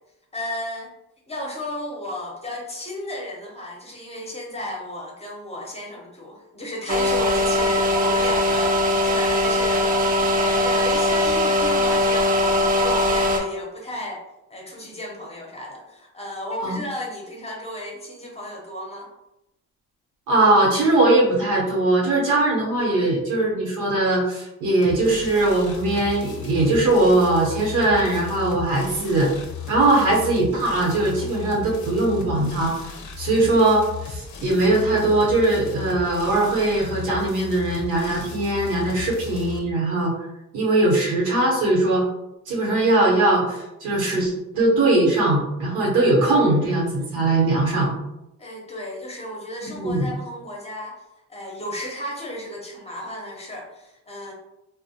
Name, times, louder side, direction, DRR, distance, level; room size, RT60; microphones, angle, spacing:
voice 1, 0.3-0.9 1.3-14.2 14.5-19.1 46.3-46.6 48.4-51.0 51.3-54.3, left 1 dB, 20° left, -1 dB, 0.7 m, -33 dB
sound 1, 6.9-13.4, left 1 dB, 30° right, 0.4 m, -20 dB
voice 2, 20.3-29.3 29.7-32.7 33.2-40.1 40.5-42.0 42.5-47.9 49.7-50.1, right 2 dB, 85° right, -3 dB, 0.9 m, -20 dB
sound 2, 24.8-39.6, left 7 dB, 70° left, 0.6 m, -36 dB
2.3 x 2.1 x 2.7 m, 0.90 s
cardioid pair, 90°, 30 cm